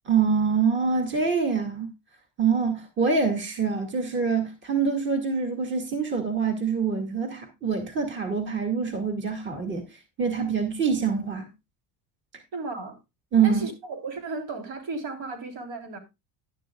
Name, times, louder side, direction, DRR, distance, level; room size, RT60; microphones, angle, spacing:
voice 1, 0.1-1.9 2.4-11.5 13.3-13.7, right 5 dB, 25° right, 2.2 m, -25 dB
voice 2, 12.5-13.0 13.4-16.0, right 3 dB, 70° right, 3.6 m, -35 dB
11.5 x 11.5 x 2.3 m
cardioid pair, 130°, 41 cm